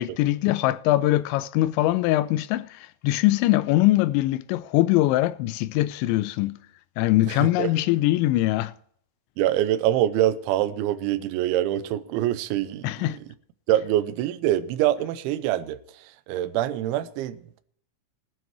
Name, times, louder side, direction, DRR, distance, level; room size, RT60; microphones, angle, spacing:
voice 1, 0.0-6.6 7.0-8.7 12.8-13.2, left 16 dB, 85° left, 2.7 m, -22 dB
voice 2, 7.3-7.7 9.4-13.2 13.7-15.8 16.3-17.6, right 13 dB, 80° right, 2.9 m, -25 dB
20.5 x 9.7 x 3.0 m
omnidirectional pair, 5.7 m